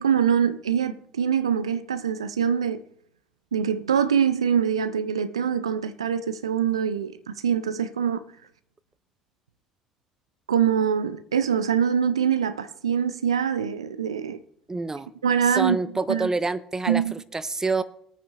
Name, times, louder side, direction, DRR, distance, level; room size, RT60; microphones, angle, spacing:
voice 1, 0.0-2.8 3.5-8.2 10.5-14.4 15.2-15.8 16.1-16.3 16.9-17.1, right 8 dB, 80° right, 0.4 m, -24 dB
voice 2, 14.7-15.1 15.5-17.8, right 3 dB, 20° right, 0.7 m, -27 dB
22.0 x 9.0 x 2.4 m
figure-of-eight pair, 50°, 3 cm